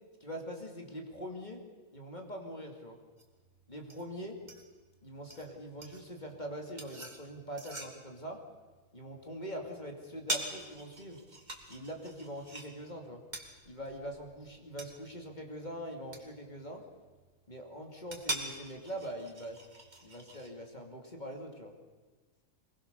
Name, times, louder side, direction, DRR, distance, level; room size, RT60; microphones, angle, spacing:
voice 1, 0.2-1.6 1.9-3.0 3.7-4.4 5.0-8.4 8.9-11.2 11.7-13.2 13.7-16.8 17.5-19.6 20.0-21.8, equal, 35° left, 2 dB, 2.6 m, -43 dB
sound 1, 3.2-20.5, right 1 dB, 30° right, 2.7 m, -45 dB
23.5 x 21.0 x 6.8 m, 1.4 s
omnidirectional pair, 1.4 m